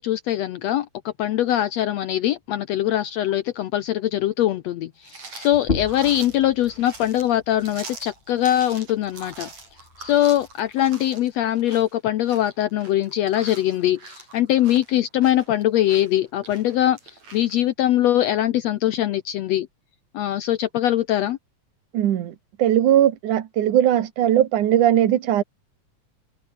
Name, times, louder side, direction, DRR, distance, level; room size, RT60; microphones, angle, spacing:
voice 1, 0.0-9.5 10.0-19.7 20.1-21.4, left 12 dB, 70° left, 1.8 m, -22 dB
sound 1, 5.0-17.6, right 3 dB, 65° right, 8.5 m, -43 dB
sound 2, 5.5-10.7, left 4 dB, 35° left, 0.9 m, -35 dB
voice 2, 21.9-25.4, right 11 dB, 85° right, 3.1 m, -19 dB
omnidirectional pair, 3.5 m